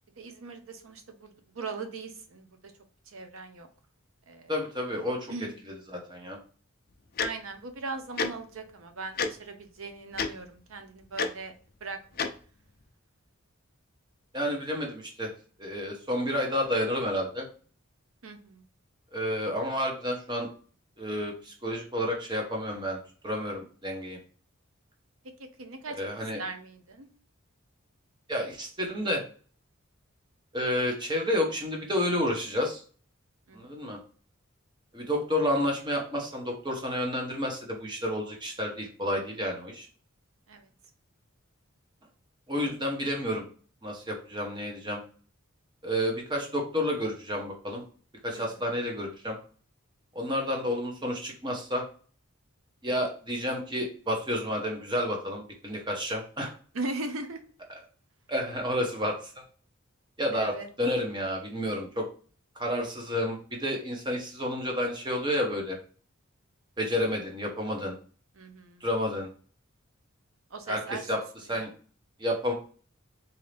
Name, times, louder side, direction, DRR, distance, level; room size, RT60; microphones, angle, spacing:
voice 1, 0.2-2.7 3.1-3.7 4.3-4.5 5.3-5.6 7.2-11.5 11.8-12.2 18.2-18.6 25.4-26.1 26.4-27.1 33.5-33.8 40.5-40.7 48.3-48.6 56.7-57.5 60.3-60.7 68.4-68.8 70.5-71.1 71.5-71.6, right 3 dB, 75° right, 6 dB, 0.8 m, -39 dB
voice 2, 4.5-5.3 5.9-6.4 14.3-15.3 15.6-17.5 19.1-20.5 21.0-23.0 23.2-24.2 26.0-26.4 28.3-29.2 30.5-32.8 33.5-34.0 34.9-39.9 42.5-43.4 43.8-45.0 45.8-47.8 48.2-49.4 50.1-51.8 52.8-56.5 58.3-59.3 60.2-62.1 62.6-65.8 66.8-68.0 68.8-69.3 70.7-71.2 71.5-71.7 72.2-72.5, equal, 20° right, 1 dB, 1.0 m, -30 dB
Tick-tock, 7.2-7.3 8.2-8.3 9.2-9.3 10.1-10.3 11.2-11.3 12.2-12.3, left 5 dB, 45° left, 0.5 m, -27 dB
3.9 x 2.8 x 3.3 m, 0.41 s
head